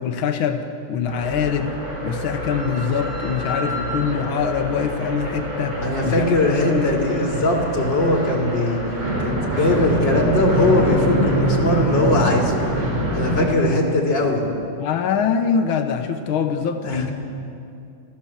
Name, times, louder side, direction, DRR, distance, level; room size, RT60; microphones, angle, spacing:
voice 1, 0.0-1.8 2.0-6.9 14.8-17.1, left 7 dB, 80° left, 5 dB, 1.1 m, -24 dB
sound 1, 1.1-13.4, right 1 dB, 55° right, 6.9 m, -25 dB
voice 2, 5.8-8.8 9.2-12.6 13.1-14.4 16.9-17.1, left 2 dB, 35° left, 0 dB, 3.4 m, -20 dB
30.0 x 13.5 x 7.3 m, 2.6 s
omnidirectional pair, 3.7 m